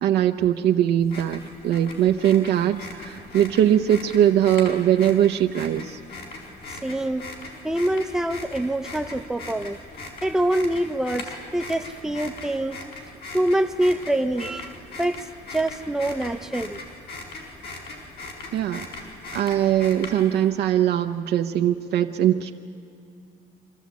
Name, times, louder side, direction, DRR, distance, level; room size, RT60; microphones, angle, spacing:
voice 1, 0.0-6.0 18.5-18.9 19.3-22.5, right 10 dB, 75° right, 4 dB, 0.8 m, -21 dB
sound 1, 1.0-20.5, left 3 dB, 70° left, 4.6 m, -40 dB
voice 2, 6.7-7.3 7.6-9.8 10.2-12.8 13.3-15.2 15.5-16.8, right 1 dB, 5° right, 8 dB, 0.6 m, -25 dB
26.0 x 13.5 x 8.4 m, 2.4 s
cardioid pair, 110°, 17 cm